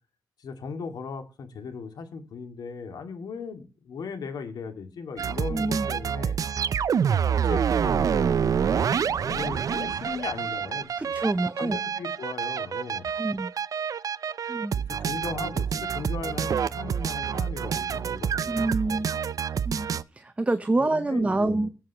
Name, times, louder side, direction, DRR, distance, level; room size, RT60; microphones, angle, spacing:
voice 1, 0.4-6.4 7.1-11.1 11.6-13.1 14.8-18.9 20.8-21.7, left 5 dB, 85° left, 2.3 m, -38 dB
sound 1, 5.2-20.0, right 7 dB, 60° right, 0.5 m, -27 dB
voice 2, 5.5-5.9 11.0-11.8 13.2-13.5 14.5-14.8 18.5-19.1 19.6-21.7, right 2 dB, 20° right, 0.8 m, -27 dB
20.0 x 7.8 x 3.0 m
wide cardioid pair, 110°, 7 cm